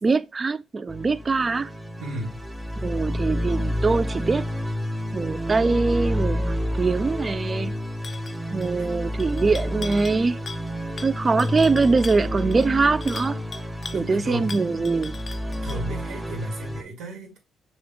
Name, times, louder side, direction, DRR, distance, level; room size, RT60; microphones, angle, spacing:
voice 1, 0.0-1.7 2.8-4.4 5.1-7.7 8.5-10.4 11.0-13.4 13.9-15.2, right 4 dB, 30° right, 0.3 m, -23 dB
sound 1, 0.9-16.8, equal, 5° right, 0.8 m, -29 dB
voice 2, 2.0-2.4 8.8-8.9 13.9-14.6 15.6-17.4, right 2 dB, 85° right, 1.8 m, -34 dB
sound 2, 8.0-8.4 8.6-8.9 9.2-10.2 10.5-10.7 11.0-14.0 14.5-15.9, left 4 dB, 35° left, 0.5 m, -39 dB
6.1 x 2.3 x 3.6 m
cardioid pair, 90°, 0 cm